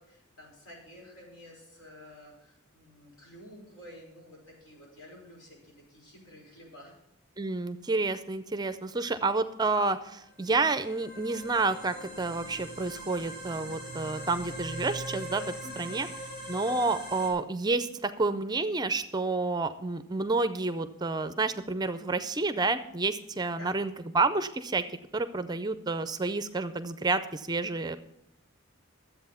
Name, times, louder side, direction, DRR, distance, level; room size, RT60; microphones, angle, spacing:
voice 1, 0.0-6.9 15.6-16.0 23.5-23.7, left 1 dB, 80° left, -3 dB, 5.5 m, -51 dB
voice 2, 7.4-16.1 16.5-24.8 25.1-28.0, right 3 dB, 20° right, 11 dB, 0.4 m, -29 dB
sound 1, 10.3-17.3, right 1 dB, 40° left, 3.9 m, -41 dB
12.5 x 8.1 x 5.6 m, 0.80 s
head